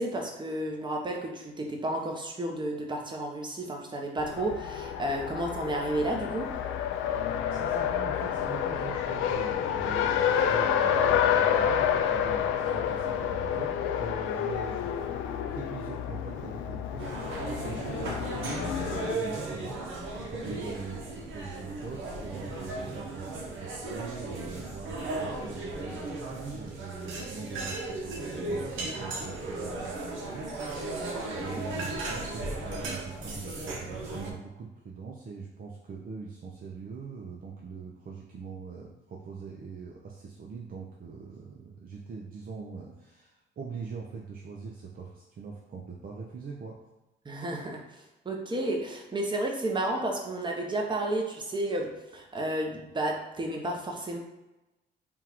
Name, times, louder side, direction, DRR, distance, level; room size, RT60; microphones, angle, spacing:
voice 1, 0.0-6.5 20.3-20.4 31.1-31.6 47.2-47.8 48.2-54.2, right 1 dB, 25° right, 1 dB, 0.9 m, -32 dB
Race car auto racing, 4.2-19.1, left 9 dB, 90° left, 0.4 m, -29 dB
voice 2, 7.5-17.1 17.3-30.9 31.3-46.8, right 5 dB, 45° right, -1 dB, 0.7 m, -42 dB
sound 1, 17.0-34.3, right 2 dB, 80° right, 0.9 m, -36 dB
3.6 x 2.5 x 4.4 m, 1.0 s
cardioid pair, 90°, 20 cm